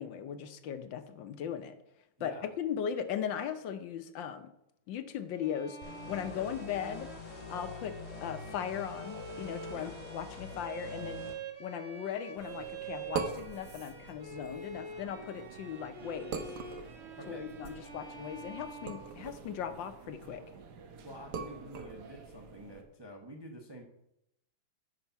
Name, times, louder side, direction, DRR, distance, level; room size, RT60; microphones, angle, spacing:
voice 1, 0.0-1.7 2.2-2.3 2.6-4.5 4.9-5.8 6.1-7.1 7.5-7.9 8.2-11.2 11.6-16.4 17.3-20.4, left 8 dB, 70° left, 9 dB, 1.4 m, -38 dB
voice 2, 2.2-2.5 6.3-6.5 9.7-9.9 17.2-17.7 21.0-23.8, equal, 20° right, 1 dB, 0.7 m, -48 dB
Bowed string instrument, 5.4-19.6, right 4 dB, 35° right, 1.5 m, -46 dB
sound 1, 5.8-11.3, left 4 dB, 40° left, 2.5 m, -45 dB
sound 2, 12.4-22.8, right 5 dB, 60° right, 1.4 m, -44 dB
9.7 x 5.4 x 5.8 m, 0.80 s
omnidirectional pair, 2.2 m